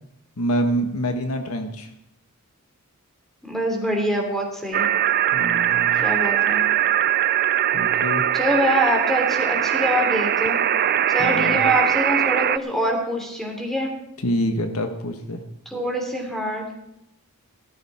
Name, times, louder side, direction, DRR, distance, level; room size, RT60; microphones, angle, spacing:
voice 1, 0.4-1.9 5.3-6.1 7.7-8.2 11.2-11.6 14.2-15.4, equal, 75° left, 6 dB, 1.3 m, -26 dB
voice 2, 3.4-4.9 6.0-6.6 8.3-10.6 11.1-13.9 15.7-16.7, equal, ahead, 1 dB, 3.2 m, -24 dB
sound 1, 4.7-12.6, right 10 dB, 45° right, 0.4 m, -21 dB
16.0 x 13.0 x 4.3 m, 0.82 s
head